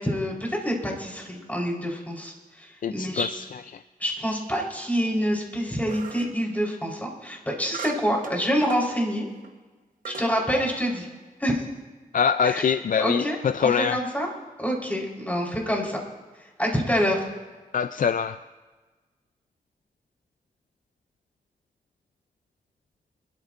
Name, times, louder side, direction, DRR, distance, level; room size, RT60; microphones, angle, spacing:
voice 1, 0.0-3.3 4.0-9.2 10.1-11.1 11.4-11.6 12.4-12.6 13.0-14.3 14.6-16.0 16.6-17.2, equal, 10° left, -2 dB, 4.0 m, -27 dB
voice 2, 2.8-3.8 12.1-14.0 17.7-18.4, left 7 dB, 60° left, 12 dB, 0.4 m, -24 dB
sound 1, 5.9-6.4 7.7-8.9 9.4-9.5 10.0-10.4, right 6 dB, 65° right, 1.1 m, -39 dB
25.5 x 13.5 x 2.6 m, 1.3 s
cardioid pair, 70°, 15 cm